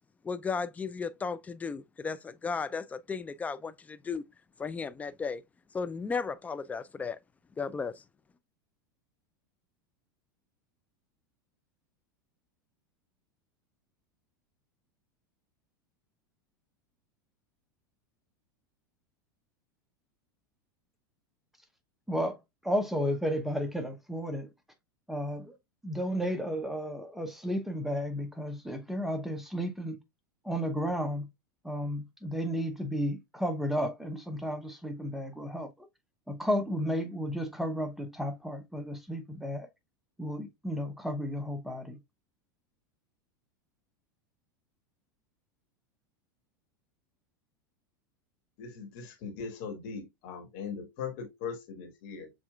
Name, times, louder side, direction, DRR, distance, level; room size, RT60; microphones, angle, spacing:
voice 1, 0.2-4.2 4.6-5.4 5.7-7.2 7.6-8.0, left 5 dB, 15° left, 0.3 m, -35 dB
voice 2, 22.1-24.5 25.1-25.6 25.8-30.0 30.4-31.3 31.6-35.9 36.3-39.7 40.2-42.0, equal, ahead, 0.7 m, -33 dB
voice 3, 48.6-52.3, left 6 dB, 55° left, 1.3 m, -40 dB
7.0 x 2.5 x 2.3 m
figure-of-eight pair, 85°, 11 cm